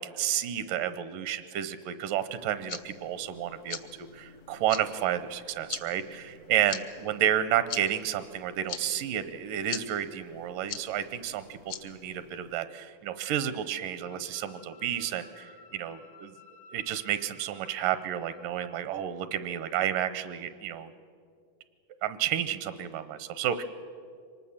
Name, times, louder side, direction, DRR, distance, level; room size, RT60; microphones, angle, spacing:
voice 1, 0.0-16.3 16.7-20.9 22.0-23.6, right 10 dB, 80° right, 13 dB, 2.3 m, -31 dB
sound 1, 2.4-12.6, left 8 dB, 75° left, 1.3 m, -44 dB
sound 2, 14.0-18.8, left 4 dB, 60° left, 1.4 m, -54 dB
24.5 x 19.5 x 7.2 m, 2.3 s
omnidirectional pair, 3.8 m